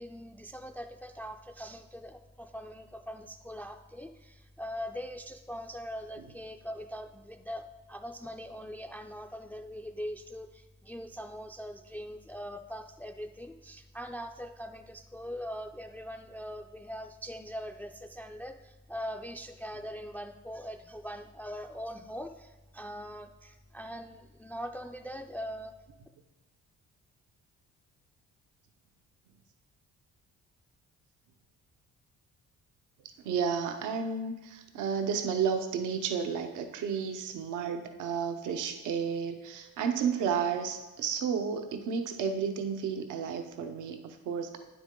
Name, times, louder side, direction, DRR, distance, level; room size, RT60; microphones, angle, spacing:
voice 1, 0.0-25.7, equal, 5° left, 5 dB, 0.3 m, -42 dB
voice 2, 33.2-44.6, right 6 dB, 85° right, 6 dB, 0.8 m, -32 dB
9.2 x 7.1 x 3.7 m, 1.1 s
cardioid pair, 90°, 30 cm